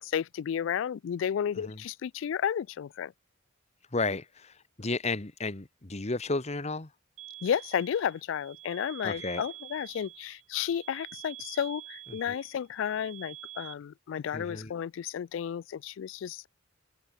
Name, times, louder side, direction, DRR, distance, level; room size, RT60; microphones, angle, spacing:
voice 1, 0.0-3.1 7.4-16.5, left 8 dB, 65° left, 0.3 m, -32 dB
voice 2, 3.9-6.9 9.0-9.4 12.1-12.4 14.3-14.7, left 3 dB, 35° left, 1.3 m, -33 dB
sound 1, 7.2-13.7, right 15 dB, 80° right, 1.8 m, -47 dB
head